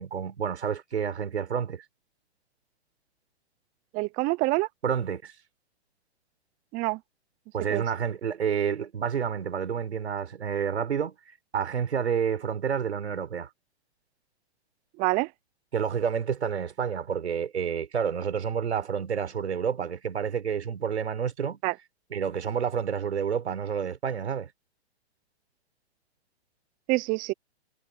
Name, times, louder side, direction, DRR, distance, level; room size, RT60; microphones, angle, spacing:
voice 1, 0.0-1.8 4.8-5.3 7.5-11.1 11.5-13.5 15.7-21.6 22.1-24.5, right 7 dB, 80° right, 4.4 m, -29 dB
voice 2, 3.9-4.7 6.7-7.0 7.7-7.8 15.0-15.3 21.6-21.7 26.9-27.3, right 23 dB, 25° right, 0.8 m, -26 dB
hypercardioid pair, 135°, 33 cm